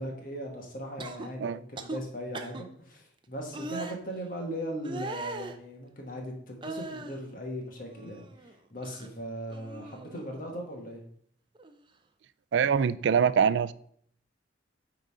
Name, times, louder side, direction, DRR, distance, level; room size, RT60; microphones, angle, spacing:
voice 1, 0.0-11.0, equal, 50° left, 1 dB, 1.8 m, -39 dB
sound 1, 1.0-1.3 1.8-2.0 2.3-2.6 3.5-4.0 4.8-5.6 6.6-7.2 7.7-8.5 8.8-9.1 9.5-10.3 11.6-11.7, right 3 dB, 25° right, 0.6 m, -39 dB
voice 2, 12.5-13.7, right 7 dB, 75° right, 16 dB, 0.3 m, -24 dB
9.1 x 3.9 x 4.9 m, 0.65 s
head